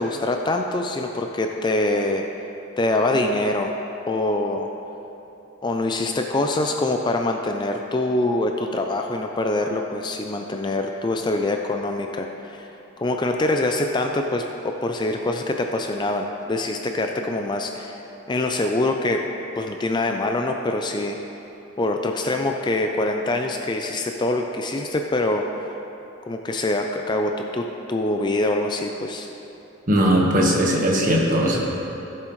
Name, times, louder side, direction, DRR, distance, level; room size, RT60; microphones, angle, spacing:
voice 1, 0.0-2.3 2.8-3.7 4.1-4.7 5.6-12.7 13.0-18.0 18.3-19.2 19.6-21.2 21.8-25.5 26.3-29.3, left 2 dB, 20° left, 3 dB, 0.4 m, -24 dB
voice 2, 29.9-31.6, equal, 40° right, -2 dB, 1.4 m, -19 dB
15.5 x 7.6 x 3.1 m, 3.0 s
head